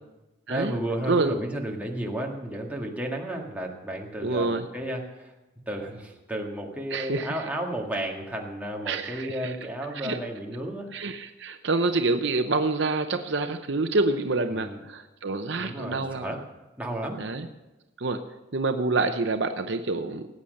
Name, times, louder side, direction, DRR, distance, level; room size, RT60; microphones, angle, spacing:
voice 1, 0.5-5.3 5.7-10.9 14.5-14.8 15.6-16.4 16.8-17.2, right 1 dB, 5° right, -1 dB, 1.9 m, -33 dB
voice 2, 4.2-4.7 6.9-7.4 8.9-9.5 9.9-10.2 10.9-16.3 17.2-17.5 18.0-18.2 18.5-20.3, right 3 dB, 55° right, 7 dB, 0.7 m, -27 dB
18.5 x 8.6 x 6.5 m, 1.0 s
head